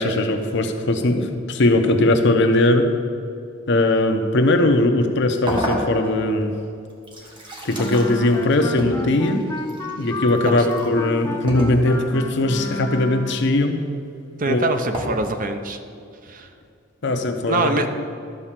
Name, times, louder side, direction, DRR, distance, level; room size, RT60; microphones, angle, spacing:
voice 1, 0.0-2.9 3.7-6.5 7.6-9.4 10.0-13.8 14.4-14.7 17.0-17.8, left 2 dB, 60° left, 5 dB, 0.8 m, -19 dB
sound 1, 5.5-6.4 6.9-10.9 11.5-12.2 14.9-15.0, equal, 25° right, 1.5 m, -30 dB
Wind instrument woodwind instrument, 7.8-13.4, left 2 dB, 15° left, 0.9 m, -31 dB
voice 2, 14.4-15.8 16.3-16.5 17.5-17.9, right 3 dB, 45° right, 7 dB, 0.6 m, -24 dB
12.5 x 4.4 x 7.4 m, 2.4 s
head